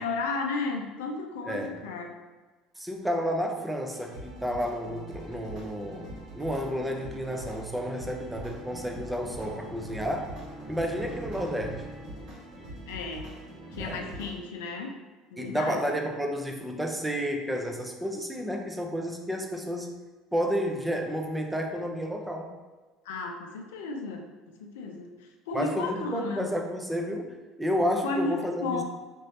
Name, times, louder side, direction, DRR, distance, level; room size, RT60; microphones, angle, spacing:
voice 1, 0.0-2.2 12.9-13.3 13.7-14.9 15.3-16.0 23.0-26.5 28.0-28.8, left 3 dB, 75° left, 3 dB, 0.4 m, -34 dB
voice 2, 1.4-1.9 2.8-10.3 10.7-11.9 13.7-14.1 15.4-20.0 20.3-22.6 25.5-28.8, equal, 10° right, 2 dB, 0.7 m, -31 dB
sound 1, 3.9-14.3, right 1 dB, 60° right, 1.3 m, -43 dB
Bowed string instrument, 8.3-12.7, equal, 25° left, 0.7 m, -47 dB
5.2 x 3.1 x 2.8 m, 1.3 s
hypercardioid pair, 65°, 0 cm